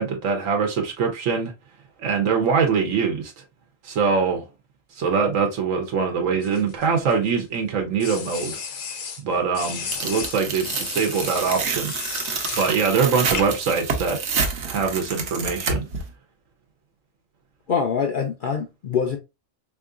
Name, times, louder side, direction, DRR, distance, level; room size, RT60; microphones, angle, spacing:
voice 1, 0.0-1.5 2.0-3.3 3.8-4.4 5.0-8.6 9.2-11.9 12.5-14.2 14.6-15.9, right 5 dB, 80° right, 1.1 m, -23 dB
sound 1, 6.4-7.4 8.0-9.2 9.5-12.8 13.4-13.7, left 6 dB, 80° left, 1.2 m, -33 dB
Tearing, 9.9-16.0, right 5 dB, 65° right, 1.0 m, -28 dB
voice 2, 17.7-19.2, left 6 dB, 65° left, 0.5 m, -24 dB
3.7 x 3.0 x 2.4 m
omnidirectional pair, 1.3 m